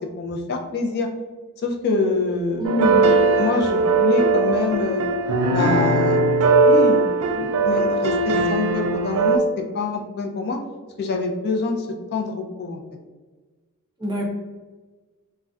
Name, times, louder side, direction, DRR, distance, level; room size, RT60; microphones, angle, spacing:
voice 1, 0.2-1.1 1.6-2.7 3.3-5.0 5.5-6.2 6.6-10.6 11.0-12.8, left 3 dB, 45° left, 1 dB, 0.4 m, -25 dB
voice 2, 2.6-3.0 14.0-14.3, left 1 dB, 20° right, -2 dB, 0.5 m, -24 dB
sound 1, 2.6-9.4, right 3 dB, 80° right, 0.4 m, -19 dB
2.3 x 2.1 x 3.5 m, 1.3 s
head